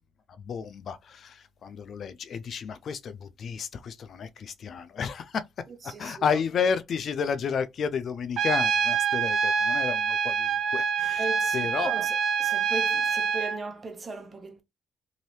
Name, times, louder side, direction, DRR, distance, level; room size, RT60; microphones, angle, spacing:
voice 1, 0.4-5.4 5.8-11.3 11.5-11.9, left 6 dB, 60° left, 0.4 m, -31 dB
voice 2, 5.8-6.4 11.2-14.6, right 3 dB, 35° right, 1.0 m, -37 dB
Trumpet, 8.4-13.6, right 6 dB, 65° right, 0.6 m, -26 dB
2.8 x 2.6 x 3.2 m
supercardioid pair, 65°, 0 cm